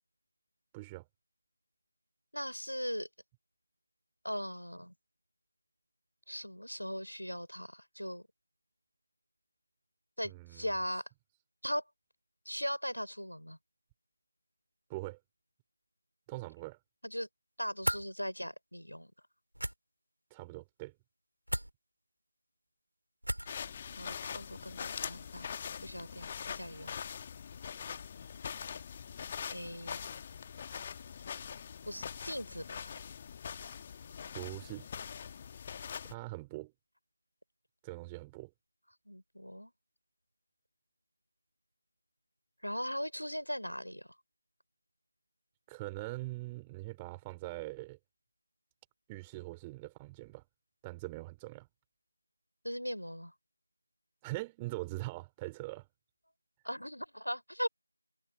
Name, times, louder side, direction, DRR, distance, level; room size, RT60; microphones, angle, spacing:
voice 1, 0.7-1.1 10.2-10.7 14.9-15.2 16.3-16.8 20.3-20.9 34.3-34.9 36.0-36.7 37.8-38.5 45.7-48.0 49.1-50.4 50.8-51.7 54.2-55.9, right 21 dB, 5° right, 3.4 m, -42 dB
voice 2, 2.3-3.1 4.2-4.9 6.3-8.2 10.2-11.0 11.6-11.8 12.5-13.6 17.0-17.3 17.6-19.1 24.0-25.6 25.8-27.0 29.5-30.1 31.9-33.0 39.1-39.7 42.6-44.1 52.6-53.3 56.6-57.7, equal, 90° left, 5.6 m, -39 dB
sound 1, 17.8-18.0 19.5-19.7 21.5-21.7 23.2-23.6, right 1 dB, 75° right, 2.6 m, -33 dB
sound 2, 23.5-36.1, left 7 dB, 15° left, 1.7 m, -43 dB
figure-of-eight pair, 170°, 0 cm